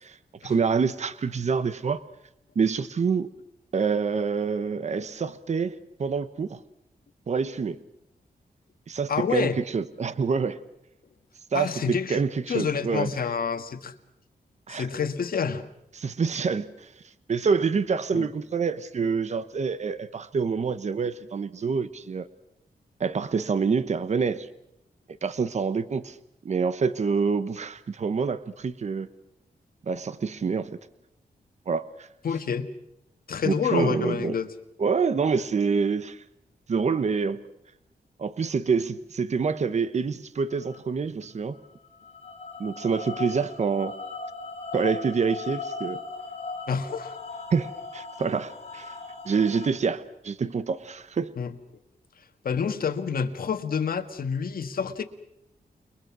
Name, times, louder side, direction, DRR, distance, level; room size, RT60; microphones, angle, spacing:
voice 1, 0.0-2.0 2.5-3.3 3.7-6.6 7.3-7.8 8.9-10.6 11.5-13.1 14.7-14.9 15.9-16.9 17.3-22.3 23.0-24.5 25.2-26.2 26.4-29.1 29.9-30.8 31.7-32.1 33.4-34.4 34.8-36.2 36.7-37.4 38.2-41.6 42.6-44.0 44.7-46.0 47.5-48.9 49.2-51.3, right 5 dB, 45° right, 13 dB, 1.1 m, -27 dB
voice 2, 9.1-9.6 11.5-12.2 12.5-13.9 14.7-15.7 18.1-18.3 32.2-32.7 33.3-34.5 46.7-47.2 51.4-51.5 52.4-55.0, left 6 dB, 65° left, 6 dB, 1.8 m, -28 dB
sound 1, 40.5-40.8 41.6-49.7, left 3 dB, 40° left, 4.3 m, -38 dB
30.0 x 22.0 x 6.2 m, 0.80 s
wide cardioid pair, 145°, 16 cm